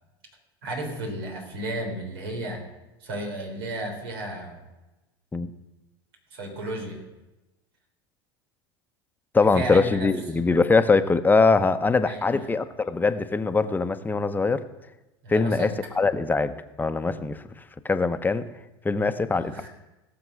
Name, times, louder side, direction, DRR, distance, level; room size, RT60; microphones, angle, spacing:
voice 1, 0.6-2.6 3.0-4.6 6.3-7.0 9.5-10.1 12.1-12.5 15.2-15.7 19.3-19.7, right 1 dB, 80° right, 2 dB, 3.6 m, -33 dB
voice 2, 9.3-14.6 15.3-15.7 16.0-17.4 17.8-18.5 18.8-19.7, left 4 dB, 15° left, 10 dB, 0.9 m, -22 dB
17.0 x 7.2 x 6.4 m, 1.0 s
hypercardioid pair, 90°, 13 cm